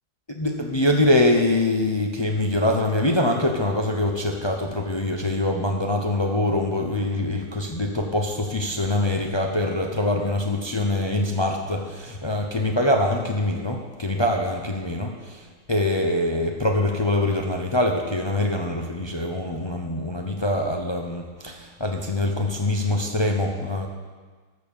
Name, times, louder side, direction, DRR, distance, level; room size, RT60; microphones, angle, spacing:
voice 1, 0.3-15.4 15.7-23.9, left 1 dB, 45° left, 2 dB, 0.3 m, -24 dB
13.0 x 7.1 x 7.0 m, 1.4 s
omnidirectional pair, 1.9 m